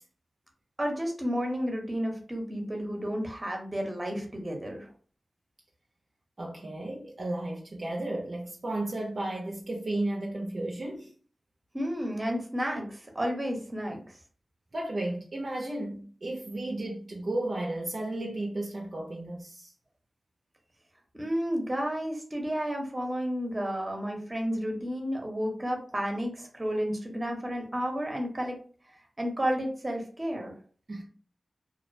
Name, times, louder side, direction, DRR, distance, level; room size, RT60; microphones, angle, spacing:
voice 1, 0.8-4.9 11.7-14.0 21.1-28.6 29.2-30.5, equal, 30° right, 0.8 m, -31 dB
voice 2, 6.4-11.1 14.7-19.7 30.9-31.0, right 1 dB, 60° right, 0.5 m, -33 dB
2.3 x 2.1 x 2.5 m
cardioid pair, 45°, 0 cm